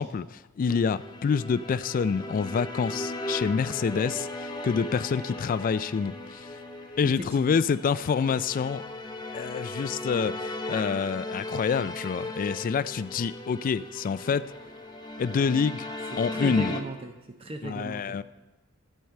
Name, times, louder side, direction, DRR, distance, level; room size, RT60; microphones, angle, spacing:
voice 1, 0.0-6.5 7.0-8.9 9.3-14.5 15.2-15.9 16.2-16.8 17.6-18.2, left 6 dB, 40° left, 16 dB, 0.3 m, -27 dB
sound 1, 0.7-16.8, left 2 dB, 20° left, 0.7 m, -37 dB
voice 2, 7.0-7.6 16.1-18.2, right 2 dB, 30° right, 6 dB, 0.5 m, -37 dB
12.5 x 4.6 x 6.5 m, 1.1 s
head